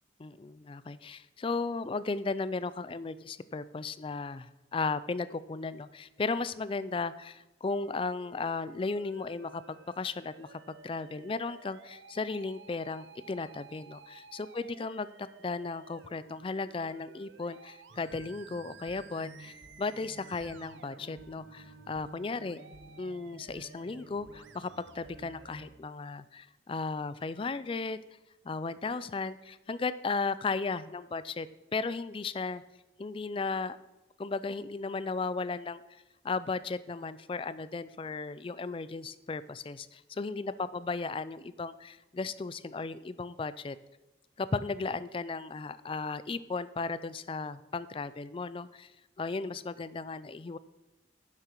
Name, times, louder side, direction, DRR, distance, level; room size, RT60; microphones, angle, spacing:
voice 1, 0.2-22.6 23.0-28.0 28.4-32.6 33.0-33.8 34.2-43.8 44.4-48.9 49.2-50.6, left 4 dB, 30° left, 16 dB, 0.4 m, -35 dB
Musical instrument, 7.7-25.7, right 5 dB, 80° right, 0.7 m, -55 dB
sound 1, 17.9-25.8, right 2 dB, 50° right, 0.8 m, -54 dB
10.5 x 7.6 x 4.5 m, 1.0 s
head